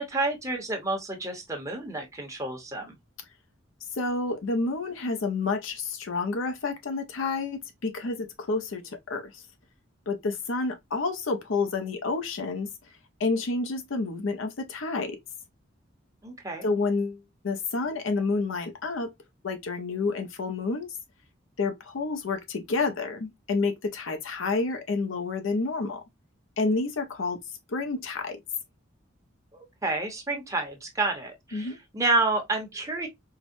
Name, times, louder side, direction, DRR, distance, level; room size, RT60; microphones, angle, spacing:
voice 1, 0.0-2.9 16.2-16.7 29.5-33.1, right 2 dB, 15° right, 1.0 m, -29 dB
voice 2, 4.0-9.4 10.1-12.7 13.2-15.2 16.6-17.2 17.4-19.1 19.4-20.9 21.6-26.0 26.6-27.4 27.7-28.4 31.5-31.8, left 3 dB, 85° left, 0.6 m, -29 dB
4.7 x 2.1 x 2.6 m
head